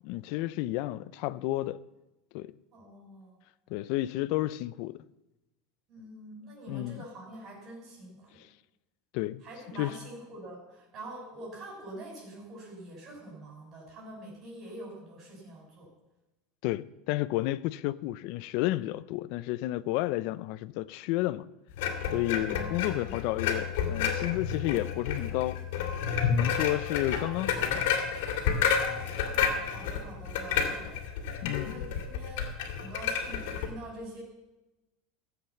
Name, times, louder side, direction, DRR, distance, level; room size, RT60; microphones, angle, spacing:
voice 1, 0.0-1.8 2.3-2.5 3.7-5.0 6.7-7.0 9.1-9.4 9.8-10.0 16.6-21.5 22.1-25.6 26.3-27.9 31.4-31.9, left 17 dB, 55° left, 0.5 m, -31 dB
voice 2, 2.7-3.4 5.9-8.4 9.4-15.9 22.3-23.1 26.5-26.8 28.8-31.0 31.2-32.5 32.8-34.2, right 1 dB, 30° right, 6.2 m, -46 dB
sound 1, 21.7-33.7, left 7 dB, 75° left, 2.5 m, -30 dB
15.0 x 7.9 x 7.2 m
supercardioid pair, 165°, 0 cm